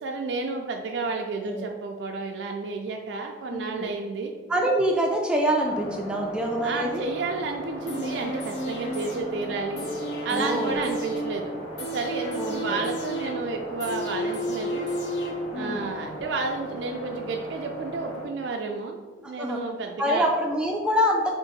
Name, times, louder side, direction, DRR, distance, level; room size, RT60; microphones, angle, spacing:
voice 1, 0.0-4.3 6.6-9.8 10.2-11.5 11.9-14.8 15.5-20.3, right 3 dB, 80° right, 2 dB, 0.3 m, -31 dB
voice 2, 3.5-3.9 4.5-7.0 10.3-10.7 12.4-12.8 15.5-15.9 19.2-19.6 20.0-21.3, equal, 5° right, 0 dB, 0.3 m, -25 dB
sound 1, 5.6-18.3, left 1 dB, 50° left, 1.0 m, -38 dB
sound 2, 7.9-15.8 16.2-16.3, equal, 80° left, 0.8 m, -32 dB
3.7 x 2.5 x 4.0 m, 1.3 s
head